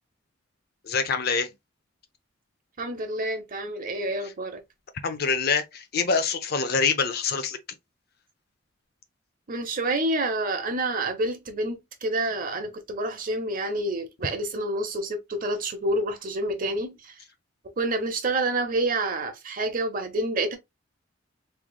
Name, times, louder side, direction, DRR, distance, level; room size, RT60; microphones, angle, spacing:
voice 1, 0.8-1.5 4.2-4.3 5.0-7.6, left 5 dB, 55° left, 0.6 m, -25 dB
voice 2, 2.8-4.6 9.5-17.1 17.8-20.6, right 2 dB, 45° right, 0.8 m, -28 dB
3.6 x 3.3 x 2.3 m
head